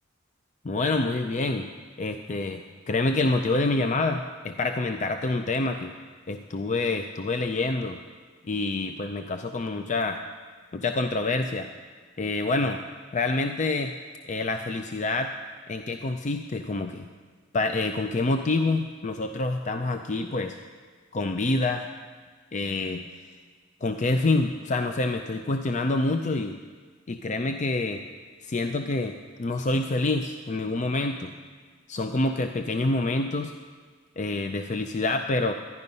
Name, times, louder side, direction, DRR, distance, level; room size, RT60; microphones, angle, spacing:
voice 1, 0.6-1.7 2.0-5.9 6.3-8.0 8.5-10.2 10.7-11.7 12.2-12.8 13.1-13.9 14.3-15.3 15.7-17.1 17.5-20.6 21.1-21.9 22.5-23.0 23.8-26.6 27.1-28.0 28.4-31.3 31.9-33.5 34.2-35.5, left 2 dB, 40° left, 6 dB, 0.5 m, -27 dB
12.5 x 11.0 x 5.4 m, 1.5 s
head